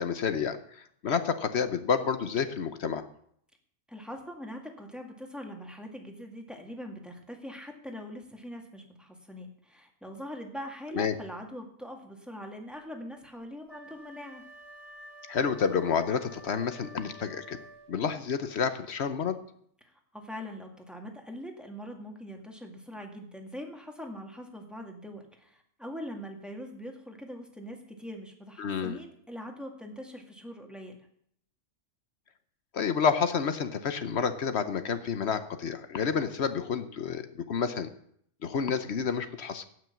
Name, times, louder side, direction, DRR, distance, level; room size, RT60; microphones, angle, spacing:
voice 1, 0.0-3.0 10.9-11.1 15.3-17.6 17.9-19.4 28.6-29.0 32.7-37.9 38.4-39.7, left 6 dB, 60° left, 11 dB, 1.1 m, -29 dB
voice 2, 3.9-14.4 19.8-31.1, equal, ahead, 2 dB, 2.0 m, -42 dB
Wind instrument woodwind instrument, 13.7-18.1, right 1 dB, 20° right, 2.0 m, -50 dB
16.0 x 6.3 x 7.1 m, 0.67 s
omnidirectional pair, 1.3 m